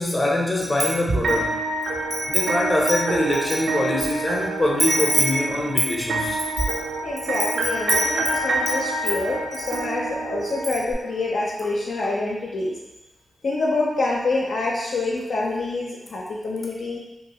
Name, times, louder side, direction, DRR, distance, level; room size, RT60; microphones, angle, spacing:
voice 1, 0.0-1.6 2.3-6.4, left 1 dB, 35° left, -2 dB, 0.8 m, -24 dB
Wind chime, 0.6-1.4 1.8-4.1 4.4-4.5 4.8-8.8 9.1-9.8 10.1-10.2 10.5-10.9, right 1 dB, 40° right, 0.8 m, -26 dB
sound 1, 1.2-11.3, right 2 dB, 75° right, 0.4 m, -28 dB
voice 2, 7.0-12.8 13.4-17.0, left 2 dB, 75° left, -4 dB, 0.6 m, -26 dB
2.6 x 2.5 x 3.0 m, 0.96 s
supercardioid pair, 45°, 0 cm